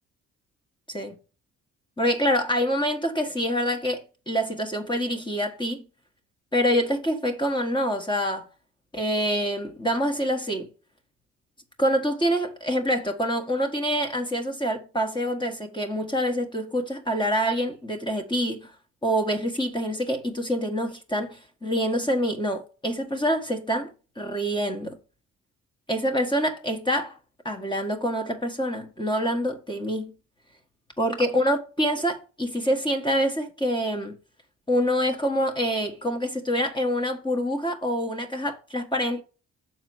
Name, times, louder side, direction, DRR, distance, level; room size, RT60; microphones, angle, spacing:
voice 1, 2.0-5.8 6.5-8.5 8.9-10.7 11.8-18.7 19.0-25.0 25.9-27.2 27.4-30.1 31.0-34.2 34.7-39.2, equal, 15° left, 1.4 m, -26 dB
6.6 x 4.4 x 6.1 m
cardioid pair, 90°, 30 cm